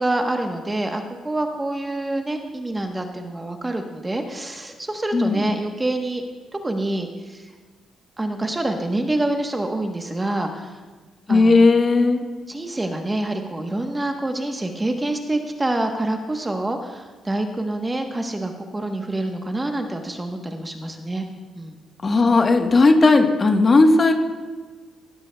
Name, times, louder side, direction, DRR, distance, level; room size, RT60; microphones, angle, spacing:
voice 1, 0.0-6.2 6.6-7.5 8.2-10.7 11.3-11.6 12.5-21.2 21.5-21.8, right 1 dB, 15° right, 4 dB, 1.1 m, -26 dB
voice 2, 5.1-5.4 11.3-12.2 22.0-24.1, left 3 dB, 35° left, 4 dB, 1.2 m, -16 dB
15.0 x 13.0 x 2.3 m, 1.3 s
cardioid pair, 90°, 0 cm